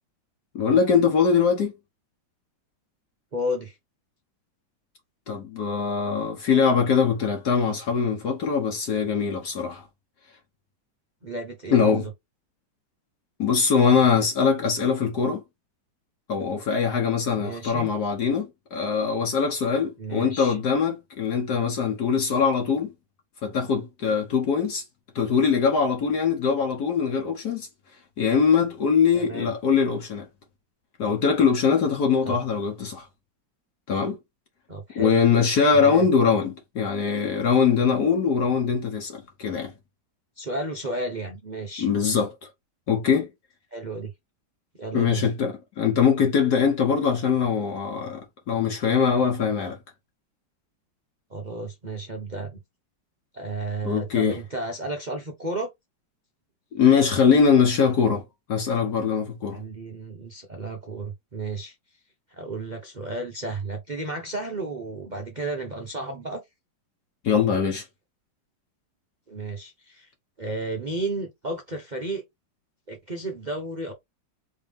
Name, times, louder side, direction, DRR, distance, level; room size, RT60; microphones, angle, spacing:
voice 1, 0.5-1.7 5.3-9.8 11.7-12.1 13.4-15.4 16.3-22.9 23.4-24.8 25.1-27.7 28.2-30.3 31.0-33.1 33.9-34.2 34.9-39.7 41.8-42.3 42.9-43.3 44.9-49.8 53.8-54.4 56.7-58.2 58.5-59.6 67.2-67.8, left 6 dB, 60° left, 1.5 m, -22 dB
voice 2, 3.3-3.8 11.2-12.1 17.3-17.9 20.0-20.6 29.1-29.5 32.2-32.4 34.7-35.2 35.7-36.0 40.4-41.9 43.7-44.1 44.8-45.2 51.3-52.6 53.3-55.7 59.5-61.7 62.3-66.4 69.3-70.1 70.4-72.2 72.9-73.9, right 2 dB, 50° right, 0.5 m, -33 dB
4.2 x 3.6 x 3.5 m
omnidirectional pair, 2.1 m